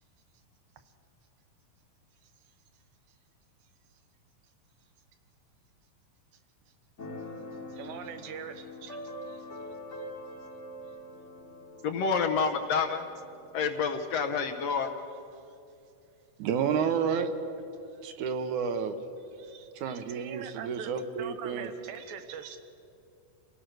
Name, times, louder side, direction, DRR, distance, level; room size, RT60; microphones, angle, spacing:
Keyboard (musical), 7.0-14.5, left 1 dB, 35° left, 1.3 m, -44 dB
voice 1, 7.7-9.5 14.7-14.8 15.3-15.6 17.9-18.1 19.3-19.7 20.1-20.9 21.2-22.6, right 8 dB, 85° right, 2.9 m, -43 dB
voice 2, 11.8-13.1 13.5-14.9, left 5 dB, 70° left, 1.5 m, -28 dB
voice 3, 16.4-17.3 18.0-19.0 19.8-21.7, right 7 dB, 70° right, 2.3 m, -30 dB
29.0 x 17.0 x 6.4 m
omnidirectional pair, 4.0 m